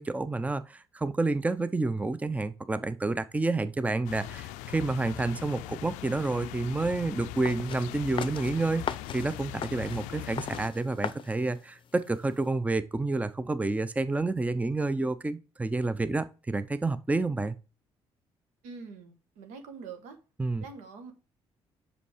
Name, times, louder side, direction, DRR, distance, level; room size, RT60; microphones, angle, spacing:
voice 1, 0.0-8.8 9.1-17.6 20.4-20.6, right 2 dB, 10° right, 0.5 m, -29 dB
sound 1, 4.0-10.7, left 14 dB, 90° left, 0.4 m, -40 dB
sound 2, 7.5-12.5, left 7 dB, 45° left, 0.6 m, -40 dB
voice 2, 18.6-20.2 20.6-21.1, right 5 dB, 90° right, 1.2 m, -44 dB
5.5 x 5.2 x 4.9 m
supercardioid pair, 65°, 12 cm